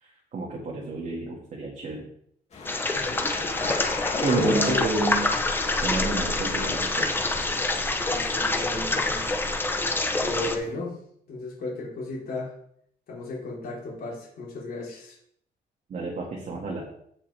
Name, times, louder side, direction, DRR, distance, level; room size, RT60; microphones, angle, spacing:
voice 1, 0.0-2.1 4.2-5.4 5.8-7.1 15.9-16.8, right 3 dB, 45° right, -2 dB, 2.0 m, -30 dB
sound 1, 2.5-10.7, left 3 dB, 40° left, 2.2 m, -37 dB
sound 2, 2.7-10.6, left 2 dB, 10° left, 0.8 m, -26 dB
voice 2, 2.9-3.4 4.4-4.8 8.1-9.4 10.2-11.0 11.3-12.5 13.1-15.2, left 2 dB, 60° left, -5 dB, 3.8 m, -34 dB
15.5 x 5.5 x 3.4 m, 0.67 s
cardioid pair, 150°, 17 cm